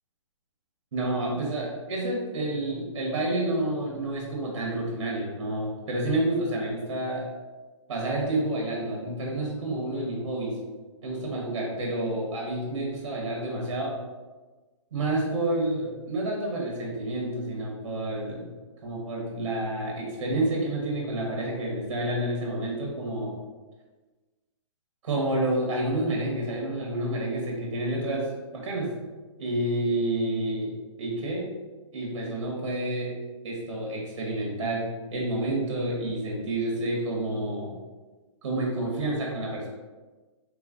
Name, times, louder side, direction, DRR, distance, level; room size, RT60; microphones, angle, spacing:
voice 1, 0.9-7.3 7.9-10.6 11.0-14.0 14.9-18.5 18.8-23.3 25.0-28.9 29.4-31.5 31.9-33.2 33.4-37.8 38.4-39.7, right 1 dB, 60° right, -2 dB, 1.1 m, -29 dB
3.6 x 3.1 x 2.5 m, 1.3 s
hypercardioid pair, 170°, 16 cm